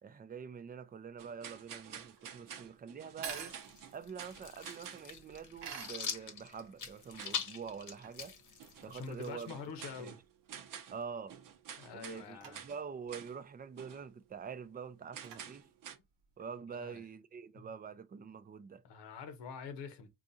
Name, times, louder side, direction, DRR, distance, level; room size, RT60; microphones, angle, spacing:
voice 1, 0.0-3.5 3.9-8.4 8.8-9.5 10.0-10.2 10.9-11.4 11.9-15.7 16.4-18.8, right 6 dB, 25° right, 0.4 m, -46 dB
sound 1, 1.0-16.5, right 7 dB, 85° right, 0.8 m, -52 dB
sound 2, 1.2-5.1 7.2-7.5 8.6-8.9 9.4-11.0 11.3-12.3 12.5-12.8 13.1-13.4 13.8-14.0 15.1-16.0, right 8 dB, 55° right, 0.7 m, -49 dB
sound 3, 3.3-9.7, left 6 dB, 50° left, 0.9 m, -44 dB
voice 2, 8.9-10.2 11.8-12.6 16.7-17.0 17.6-17.7 18.8-20.1, left 5 dB, 85° left, 0.9 m, -45 dB
3.9 x 2.4 x 2.6 m
cardioid pair, 90°, 41 cm